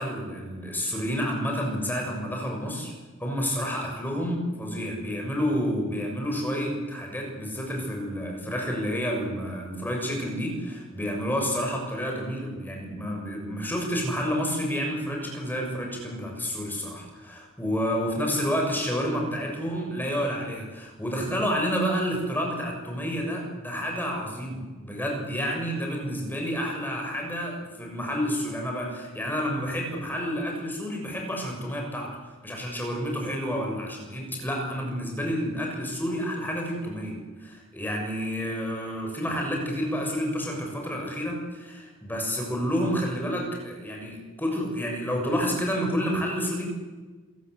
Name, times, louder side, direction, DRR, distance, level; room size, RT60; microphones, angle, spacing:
voice 1, 0.0-2.9 3.2-32.1 32.4-46.7, equal, 10° left, 0 dB, 6.8 m, -29 dB
28.5 x 17.0 x 8.2 m, 1.3 s
head